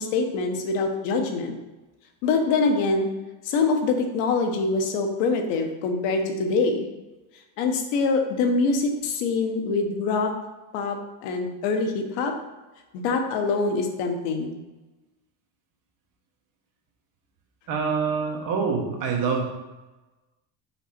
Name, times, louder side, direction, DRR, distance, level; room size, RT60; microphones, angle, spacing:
voice 1, 0.0-1.6 2.2-3.1 3.4-6.9 7.6-10.3 10.7-12.3 12.9-14.5, left 4 dB, 80° left, 4 dB, 1.2 m, -24 dB
voice 2, 17.7-19.5, right 5 dB, 45° right, 1 dB, 1.3 m, -25 dB
5.8 x 4.9 x 4.3 m, 1.1 s
cardioid pair, 170°, 43 cm